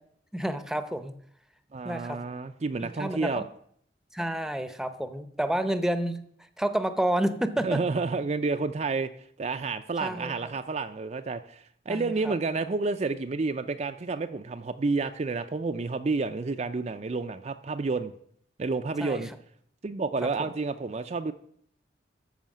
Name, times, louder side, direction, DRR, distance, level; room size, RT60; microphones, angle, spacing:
voice 1, 0.3-1.1 1.8-2.2 2.8-3.4 4.1-6.2 6.6-7.8 10.0-10.3 11.9-12.3 19.0-19.2 20.2-20.5, right 1 dB, 5° right, 10 dB, 0.7 m, -29 dB
voice 2, 1.7-3.4 7.6-9.1 9.4-18.1 18.6-19.3 19.8-21.3, right 3 dB, 35° right, 8 dB, 0.4 m, -30 dB
13.0 x 5.6 x 7.3 m, 0.66 s
head